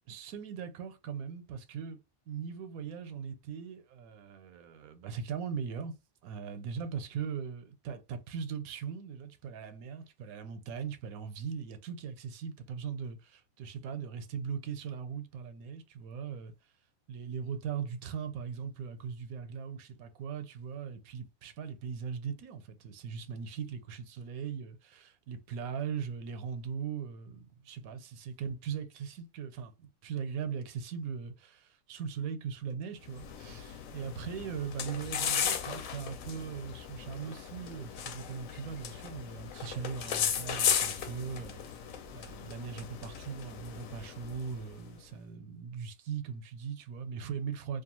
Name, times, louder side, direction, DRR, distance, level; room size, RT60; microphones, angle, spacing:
voice 1, 0.1-2.0 2.3-5.9 6.2-16.5 17.1-41.8 42.1-47.8, right 7 dB, 85° right, 1.1 m, -39 dB
sound 1, 33.1-44.8, left 8 dB, 75° left, 0.9 m, -36 dB
2.6 x 2.3 x 2.9 m
omnidirectional pair, 1.5 m